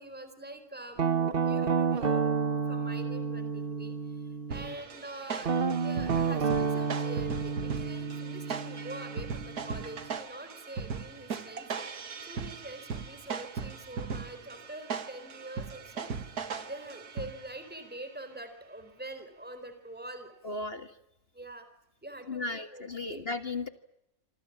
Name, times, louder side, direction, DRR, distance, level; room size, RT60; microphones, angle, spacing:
voice 1, 0.0-11.7 12.2-20.3 21.3-21.7 22.0-23.2, right 1 dB, 5° right, 9 dB, 4.2 m, -45 dB
Guitar, 1.0-4.8 5.4-10.2, right 5 dB, 40° right, 1.3 m, -30 dB
sound 1, 4.5-17.7, right 5 dB, 85° right, 2.2 m, -39 dB
voice 2, 20.4-21.0 22.3-23.7, left 3 dB, 40° left, 9 dB, 1.8 m, -35 dB
27.5 x 25.0 x 7.5 m, 0.84 s
omnidirectional pair, 1.6 m